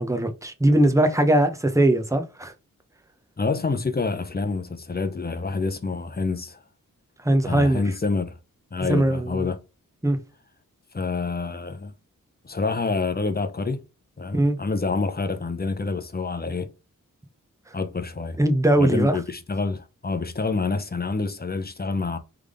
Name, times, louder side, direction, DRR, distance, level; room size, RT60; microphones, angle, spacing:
voice 1, 0.0-2.5 7.2-7.8 8.8-9.5 10.0-10.2 14.3-14.6 18.4-19.2, right 1 dB, 10° right, 0.9 m, -20 dB
voice 2, 3.4-6.6 7.4-8.4 8.7-9.6 10.9-11.9 12.4-13.8 14.2-16.7 17.7-18.4 18.8-22.2, left 4 dB, 30° left, 0.7 m, -27 dB
3.6 x 3.5 x 3.6 m
wide cardioid pair, 70°, 33 cm